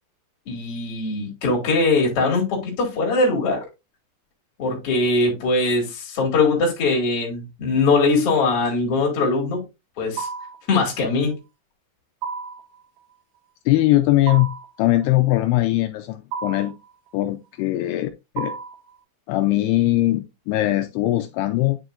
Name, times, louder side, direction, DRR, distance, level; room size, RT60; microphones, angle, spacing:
voice 1, 0.5-3.7 4.6-9.6 10.0-10.3 10.7-11.4, left 3 dB, 40° left, 2.9 m, -21 dB
sound 1, 10.2-10.7 12.2-12.7 14.3-14.8 16.3-16.8 18.4-18.9, right 5 dB, 70° right, 2.7 m, -31 dB
voice 2, 13.7-14.5 14.8-16.7 17.1-18.1 18.4-18.5 19.3-21.8, left 16 dB, 80° left, 2.6 m, -20 dB
9.4 x 4.7 x 2.5 m
omnidirectional pair, 4.7 m